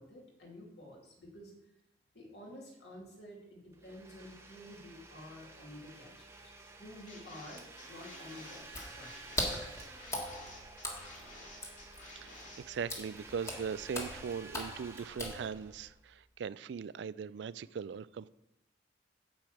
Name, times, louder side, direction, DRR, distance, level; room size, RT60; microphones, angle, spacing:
voice 1, 0.0-1.5 2.1-9.2, left 1 dB, 65° left, -2 dB, 2.8 m, -51 dB
Domestic sounds home sounds, 3.7-16.3, right 3 dB, 15° right, 0.9 m, -53 dB
sound 1, 7.1-12.6, left 2 dB, 40° left, 2.6 m, -53 dB
Water / Splash splatter, 8.7-15.9, left 1 dB, 15° left, 1.5 m, -41 dB
voice 2, 12.2-18.3, right 6 dB, 70° right, 18 dB, 0.3 m, -40 dB
9.0 x 5.0 x 7.8 m, 0.85 s
head